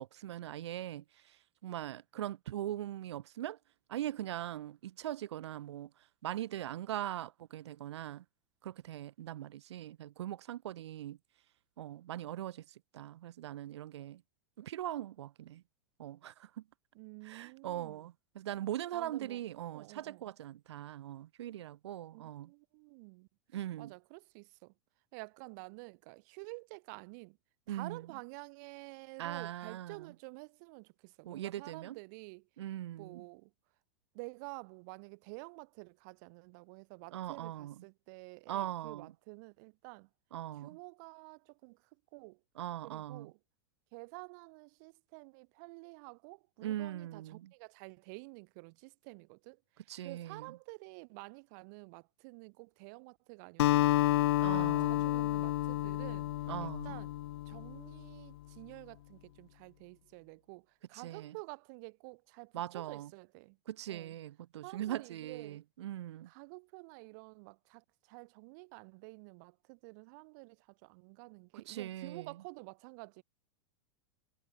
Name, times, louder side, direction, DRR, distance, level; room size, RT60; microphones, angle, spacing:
voice 1, 0.0-3.6 3.9-5.9 6.2-8.2 8.6-11.2 11.8-14.2 14.6-15.6 16.0-16.5 17.2-22.5 23.5-23.9 27.7-28.1 29.2-30.1 31.2-32.0 32.6-33.2 37.1-37.8 38.5-39.1 40.3-40.7 42.6-43.3 46.6-47.5 49.9-50.5 54.4-55.0 56.5-56.9 60.9-61.3 62.5-63.1 63.7-66.3 71.5-72.3, right 12 dB, 85° right, 2.3 m, -41 dB
voice 2, 16.9-18.0 18.9-20.3 22.1-23.3 23.8-24.7 25.1-27.4 27.7-32.5 33.0-33.5 34.1-40.1 40.6-41.8 42.1-42.4 42.8-43.4 43.9-54.2 54.5-56.3 56.6-57.1 57.4-63.6 63.9-64.1 64.6-65.6 66.2-73.2, right 32 dB, 45° right, 6.9 m, -50 dB
Acoustic guitar, 53.6-58.1, left 15 dB, 65° left, 1.1 m, -30 dB
supercardioid pair, 170°, 14 cm